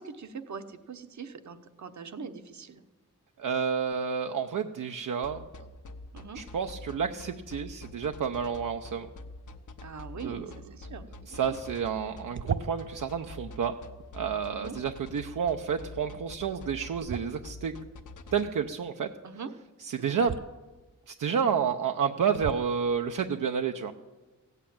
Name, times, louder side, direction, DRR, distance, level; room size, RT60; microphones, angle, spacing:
voice 1, 0.0-2.8 6.1-6.4 9.8-11.6 14.5-14.8 19.2-19.5 20.2-20.3, right 5 dB, 65° right, 10 dB, 1.1 m, -42 dB
voice 2, 3.4-5.4 6.3-9.1 10.2-10.5 11.3-13.7 14.1-17.7 18.3-19.1 19.8-20.3 21.1-23.9, right 6 dB, 80° right, 5 dB, 0.7 m, -30 dB
sound 1, 5.2-18.4, left 2 dB, 70° left, 1.1 m, -45 dB
sound 2, 12.3-13.0 17.0-17.7 20.2-20.4 21.4-21.5 22.3-22.8, right 6 dB, 40° right, 0.5 m, -35 dB
16.0 x 8.2 x 8.7 m, 1.2 s
wide cardioid pair, 100°, 31 cm